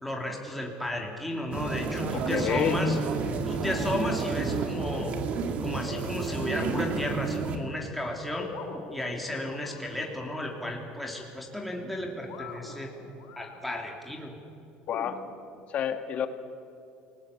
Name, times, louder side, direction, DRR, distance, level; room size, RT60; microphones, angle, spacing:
voice 1, 0.0-3.0 3.5-5.2 5.6-8.5 8.9-12.9 13.4-14.4, left 1 dB, ahead, 0 dB, 3.4 m, -34 dB
sound 1, 1.5-7.5, right 4 dB, 45° right, 2.6 m, -30 dB
voice 2, 2.1-2.8 14.9-15.2 15.7-16.3, left 9 dB, 45° left, 8 dB, 2.1 m, -29 dB
sound 2, 3.2-4.8 5.5-7.4 8.4-10.2 11.8-13.7 14.9-15.4, left 4 dB, 70° left, 5.5 m, -44 dB
28.5 x 20.0 x 8.7 m, 2.6 s
cardioid pair, 140°, 3 cm